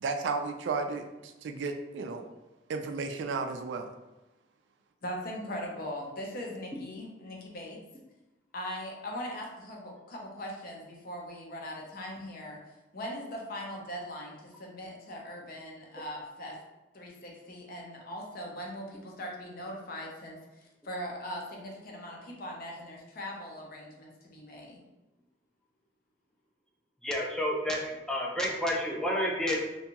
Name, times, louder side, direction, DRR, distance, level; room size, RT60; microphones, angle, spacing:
voice 1, 0.0-2.3 2.7-3.9, right 4 dB, 70° right, 6 dB, 0.3 m, -33 dB
voice 2, 5.0-7.8 8.5-12.6 12.9-16.6 16.9-24.8, equal, 55° left, -1 dB, 0.6 m, -40 dB
voice 3, 27.0-27.8 28.1-29.6, left 1 dB, 5° left, -2 dB, 0.4 m, -29 dB
2.6 x 2.3 x 2.8 m, 1.0 s
head